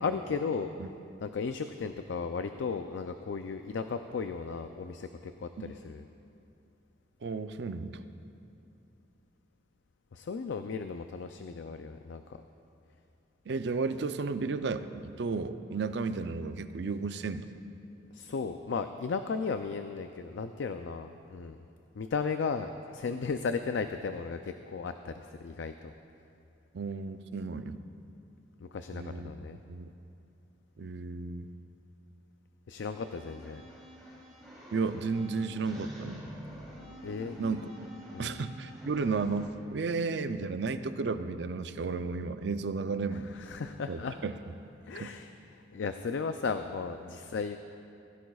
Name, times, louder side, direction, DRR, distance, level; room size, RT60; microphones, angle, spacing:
voice 1, 0.0-0.7 1.2-6.0 10.1-12.4 18.1-21.6 22.0-25.9 28.6-29.6 32.7-33.6 37.0-37.4 38.1-38.4 43.1-44.2 44.9-47.6, left 5 dB, 85° left, 8 dB, 0.4 m, -35 dB
voice 2, 7.2-8.0 13.5-17.5 26.7-27.8 28.9-29.3 29.7-29.9 30.8-31.5 34.7-36.2 37.4-37.9 38.2-43.3 43.9-44.4 45.0-45.1, right 4 dB, 70° right, 10 dB, 0.5 m, -33 dB
sound 1, 32.9-39.4, equal, ahead, 3.1 m, -48 dB
16.0 x 16.0 x 2.4 m, 2.7 s
head